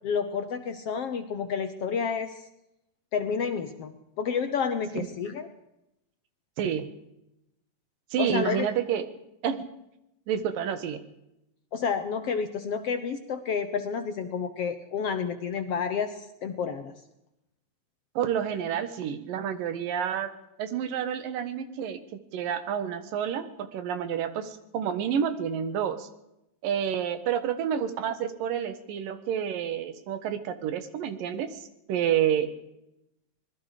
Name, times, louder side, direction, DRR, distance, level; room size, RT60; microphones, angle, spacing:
voice 1, 0.0-2.5 3.1-5.5 8.2-8.7 11.7-16.9, left 6 dB, 60° left, 9 dB, 1.7 m, -30 dB
voice 2, 8.1-9.1 9.4-9.6 10.3-11.0 18.2-20.3 20.6-22.0 22.3-26.1 26.6-31.6 31.9-32.5, right 8 dB, 80° right, 11 dB, 3.2 m, -29 dB
25.0 x 20.5 x 5.0 m, 0.86 s
omnidirectional pair, 3.9 m